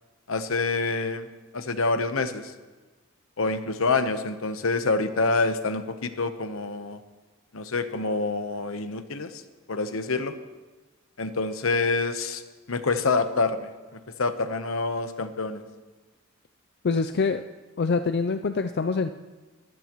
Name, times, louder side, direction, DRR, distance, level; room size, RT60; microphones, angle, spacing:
voice 1, 0.3-1.3 1.5-2.5 3.4-7.0 7.5-9.4 9.7-10.3 11.2-12.4 12.7-15.6, left 3 dB, 75° left, 9 dB, 1.0 m, -27 dB
voice 2, 16.8-17.4 17.8-19.1, left 4 dB, 50° left, 9 dB, 0.4 m, -25 dB
23.0 x 14.0 x 3.1 m, 1.3 s
head